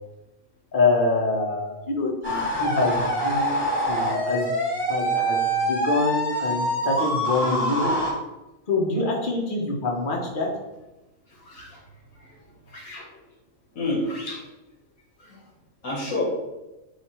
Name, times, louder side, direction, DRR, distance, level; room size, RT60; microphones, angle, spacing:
voice 1, 0.7-4.5 4.9-7.9 8.7-10.5, left 3 dB, 40° left, 0 dB, 1.2 m, -25 dB
sound 1, 2.2-8.1, equal, 10° left, 1.5 m, -25 dB
voice 2, 11.4-11.8 12.2-12.3 12.7-13.0 13.7-14.4 15.2-15.4 15.8-16.2, left 2 dB, 80° left, -3 dB, 2.3 m, -30 dB
8.2 x 2.9 x 4.4 m, 1.0 s
omnidirectional pair, 1.5 m